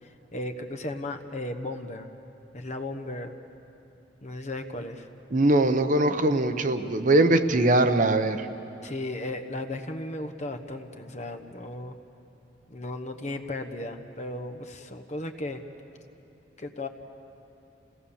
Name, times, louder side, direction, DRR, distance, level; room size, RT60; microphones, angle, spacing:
voice 1, 0.0-2.1 2.5-3.4 4.2-5.1 8.8-11.9 12.7-15.6 16.6-16.9, left 2 dB, 40° left, 7 dB, 1.1 m, -35 dB
voice 2, 5.3-8.5, right 2 dB, 45° right, 8 dB, 0.9 m, -21 dB
29.5 x 17.5 x 7.2 m, 3.0 s
head